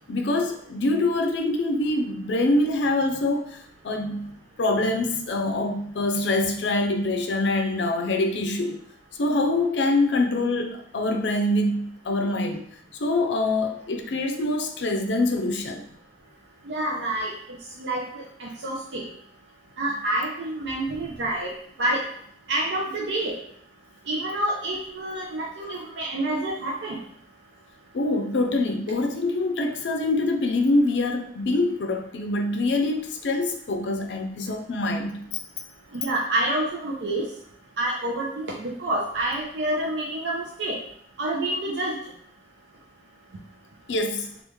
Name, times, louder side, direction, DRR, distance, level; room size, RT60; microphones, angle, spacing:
voice 1, 0.1-3.5 3.8-4.3 4.6-8.8 9.2-12.6 13.0-15.8 27.9-35.2 43.9-44.3, left 2 dB, 75° left, 4 dB, 0.5 m, -24 dB
voice 2, 16.7-17.3 17.8-19.0 19.8-21.5 21.8-22.0 22.5-23.4 24.1-27.0 35.9-37.2 37.8-40.8 41.2-42.0, right 1 dB, 80° right, -2 dB, 0.5 m, -28 dB
3.0 x 2.4 x 3.4 m, 0.65 s
head